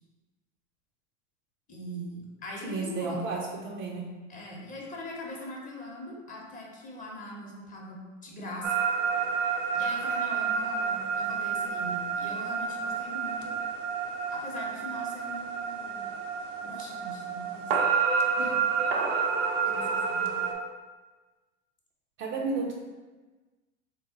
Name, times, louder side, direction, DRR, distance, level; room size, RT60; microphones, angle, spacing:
voice 1, 1.7-3.2 4.3-8.7 9.7-13.6 14.3-16.0 16.6-17.7 18.4-18.9 19.7-20.4, left 1 dB, 20° left, -2 dB, 0.9 m, -41 dB
voice 2, 2.6-4.1 22.2-22.8, right 3 dB, 35° right, -1 dB, 0.5 m, -32 dB
sound 1, 8.6-20.5, right 6 dB, 80° right, 0.7 m, -29 dB
4.0 x 2.1 x 3.8 m, 1.3 s
hypercardioid pair, 90°, 37 cm